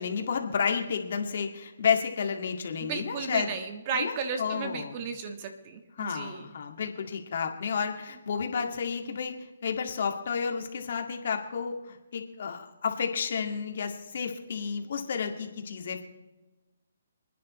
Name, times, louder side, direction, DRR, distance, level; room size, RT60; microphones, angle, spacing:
voice 1, 0.0-3.5 3.9-5.0 6.0-9.3 9.6-16.0, left 6 dB, 55° left, 4 dB, 2.1 m, -31 dB
voice 2, 2.8-6.5, right 5 dB, 30° right, 7 dB, 1.5 m, -34 dB
29.0 x 10.0 x 3.2 m, 1.1 s
hypercardioid pair, 160°, 0 cm